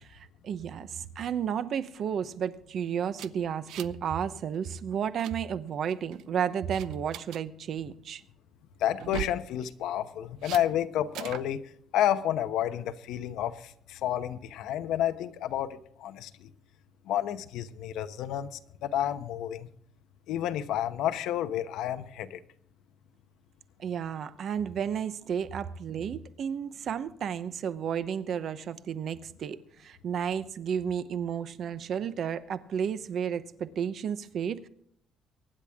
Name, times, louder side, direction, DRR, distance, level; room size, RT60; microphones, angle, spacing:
voice 1, 0.0-8.2 23.8-34.7, right 8 dB, 45° right, 0.8 m, -32 dB
floppy-out, 3.1-4.1 4.3-4.6 4.9-5.3 5.9-6.2 6.7-7.4 8.9-9.4 10.4-10.6 11.1-11.5, right 12 dB, 70° right, 0.7 m, -39 dB
voice 2, 8.8-11.6 11.9-13.6 13.9-16.5 17.1-19.7 20.3-22.4, left 11 dB, 70° left, 1.0 m, -30 dB
24.0 x 10.0 x 3.6 m
cardioid pair, 180°, 0 cm